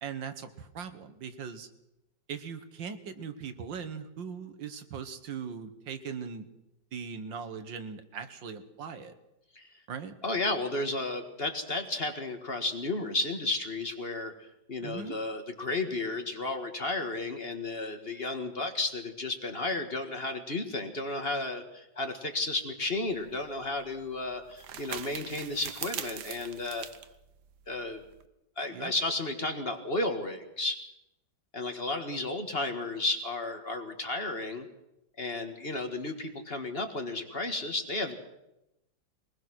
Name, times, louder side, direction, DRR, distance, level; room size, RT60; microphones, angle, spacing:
voice 1, 0.0-1.7 2.3-6.5 6.9-9.1 9.9-10.1 14.8-15.2 28.7-28.9, right 6 dB, 85° right, 10 dB, 2.1 m, -40 dB
voice 2, 10.2-26.9 27.7-28.0 28.6-30.8 31.5-34.7 35.2-38.1, left 2 dB, 35° left, 6 dB, 1.8 m, -33 dB
sound 1, 23.1-28.3, right 9 dB, 65° right, 1.5 m, -42 dB
22.0 x 20.0 x 6.3 m, 0.89 s
omnidirectional pair, 2.0 m